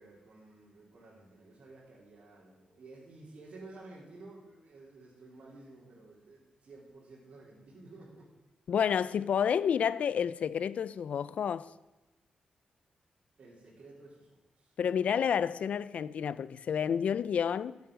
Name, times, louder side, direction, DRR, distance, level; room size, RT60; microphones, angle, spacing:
voice 1, 0.0-8.3 13.4-14.7, right 2 dB, 55° right, 3.7 m, -53 dB
voice 2, 8.7-11.7 14.8-17.8, left 8 dB, 65° left, 0.5 m, -30 dB
14.0 x 8.3 x 6.3 m
cardioid pair, 110°, 2 cm